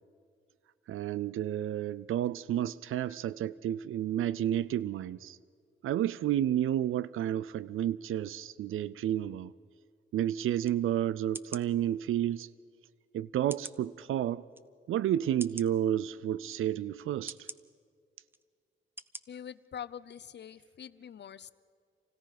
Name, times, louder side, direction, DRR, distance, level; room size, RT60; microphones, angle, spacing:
voice 1, 0.9-5.4 5.8-9.5 10.1-12.5 13.1-14.4 14.9-17.5, right 11 dB, 90° right, 0.4 m, -31 dB
sound 1, 10.6-10.8 11.3-11.7 12.4-12.5 13.5-13.8 14.5-14.6 15.4-15.7 16.5-16.6 17.3-17.6 18.3-18.4 19.0-19.2 19.6-19.7, right 2 dB, 10° right, 0.6 m, -43 dB
voice 2, 19.3-21.5, left 8 dB, 55° left, 0.7 m, -44 dB
27.0 x 17.0 x 5.9 m
cardioid pair, 105°, 21 cm